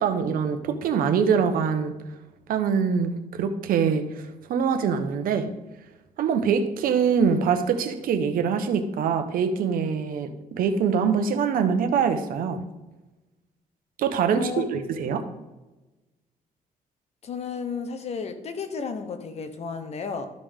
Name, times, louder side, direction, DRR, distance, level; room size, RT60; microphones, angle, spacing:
voice 1, 0.0-1.9 2.5-5.5 6.2-12.6 14.0-15.2, right 6 dB, 80° right, 8 dB, 1.0 m, -24 dB
voice 2, 14.3-14.7 17.2-20.3, left 5 dB, 45° left, 7 dB, 1.0 m, -33 dB
13.0 x 5.2 x 3.7 m, 1.1 s
cardioid pair, 135°, 15 cm